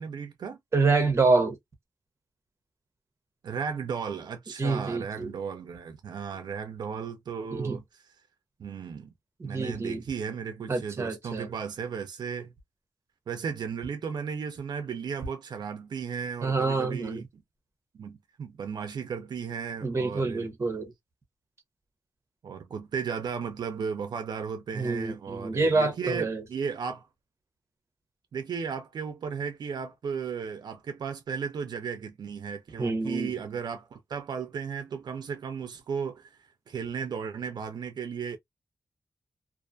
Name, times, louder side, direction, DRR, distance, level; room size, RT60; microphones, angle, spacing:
voice 1, 0.0-0.6 3.4-8.0 8.6-9.1 9.4-12.5 13.3-17.3 17.9-20.5 22.4-27.1 28.3-36.4 36.7-38.4, right 6 dB, 80° right, 0.4 m, -35 dB
voice 2, 0.7-1.6 4.6-5.3 7.5-7.8 9.4-10.0 10.7-11.5 16.4-17.2 19.8-20.9 24.7-26.4 32.8-33.4, right 3 dB, 40° right, 0.8 m, -27 dB
2.4 x 2.3 x 2.5 m
wide cardioid pair, 155°, 7 cm